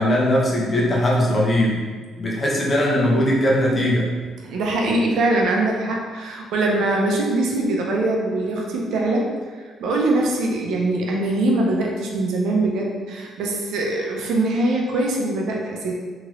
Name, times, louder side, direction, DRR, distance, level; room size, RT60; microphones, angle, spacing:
voice 1, 0.0-1.9 2.2-4.1, equal, 35° left, -4 dB, 0.8 m, -19 dB
voice 2, 4.4-15.9, right 2 dB, 75° right, -1 dB, 0.5 m, -22 dB
3.0 x 2.9 x 2.5 m, 1.5 s
supercardioid pair, 75°, 0 cm